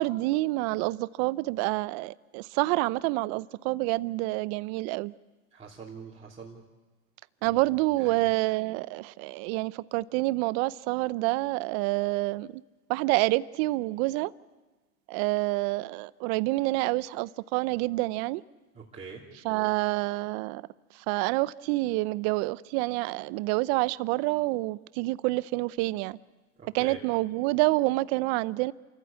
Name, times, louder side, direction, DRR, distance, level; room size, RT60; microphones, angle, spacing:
voice 1, 0.0-5.1 7.4-12.6 12.9-14.3 15.1-18.4 19.4-20.6 20.9-26.2 26.7-28.7, right 21 dB, 50° right, 0.7 m, -28 dB
voice 2, 5.5-6.6 7.4-7.6 8.0-8.3 18.7-19.2 26.6-27.0, right 5 dB, 15° right, 3.1 m, -44 dB
28.5 x 14.5 x 8.4 m
supercardioid pair, 120°, 43 cm